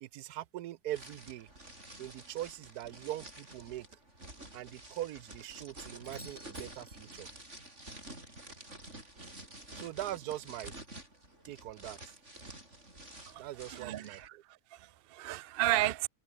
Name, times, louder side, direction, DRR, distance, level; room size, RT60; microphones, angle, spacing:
voice 1, 0.0-1.5 2.0-3.9 4.5-7.3 9.7-10.7 11.5-12.0 13.4-14.4, right 14 dB, 80° right, 1.2 m, -41 dB
sound 1, 0.9-14.3, right 1 dB, 45° right, 7.9 m, -50 dB
Doorbell, 6.0-7.9 12.0-12.1, left 1 dB, 5° left, 2.5 m, -56 dB
voice 2, 13.7-14.3 14.7-16.1, right 15 dB, 65° right, 0.6 m, -33 dB
omnidirectional pair, 1.6 m